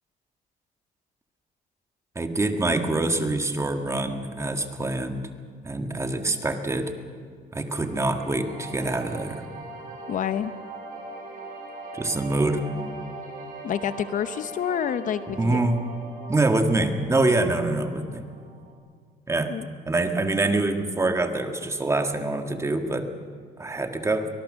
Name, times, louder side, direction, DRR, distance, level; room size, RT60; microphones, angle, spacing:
voice 1, 2.2-5.3 5.6-6.9 7.5-9.4 11.9-12.6 15.3-15.9 16.3-18.3 19.3-19.6 19.9-23.1 23.6-24.3, right 2 dB, 15° right, 6 dB, 1.8 m, -25 dB
sound 1, 7.7-18.7, right 3 dB, 55° right, 5.0 m, -41 dB
voice 2, 10.1-10.5 13.6-15.7 19.5-19.7, left 9 dB, 50° left, 12 dB, 0.8 m, -28 dB
24.0 x 19.5 x 6.4 m, 2.1 s
cardioid pair, 110°, 17 cm